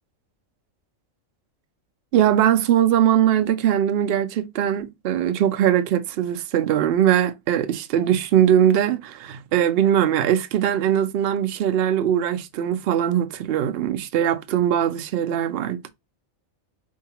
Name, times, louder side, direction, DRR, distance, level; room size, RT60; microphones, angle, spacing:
voice 1, 2.1-15.9, right 10 dB, 65° right, 0.6 m, -21 dB
4.5 x 2.7 x 2.8 m
omnidirectional pair, 1.5 m